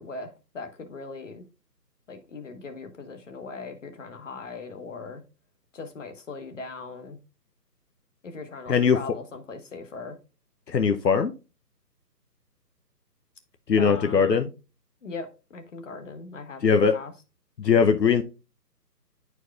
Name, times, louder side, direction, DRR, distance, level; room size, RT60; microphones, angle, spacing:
voice 1, 0.0-1.5 2.1-5.2 5.7-7.2 8.2-10.2 13.8-14.5 15.0-17.1, left 4 dB, 50° left, 7 dB, 1.1 m, -39 dB
voice 2, 10.7-11.3 13.7-14.5 16.6-17.0 17.6-18.2, left 6 dB, 80° left, 7 dB, 0.8 m, -20 dB
9.9 x 4.6 x 2.3 m, 0.30 s
figure-of-eight pair, 150°, 49 cm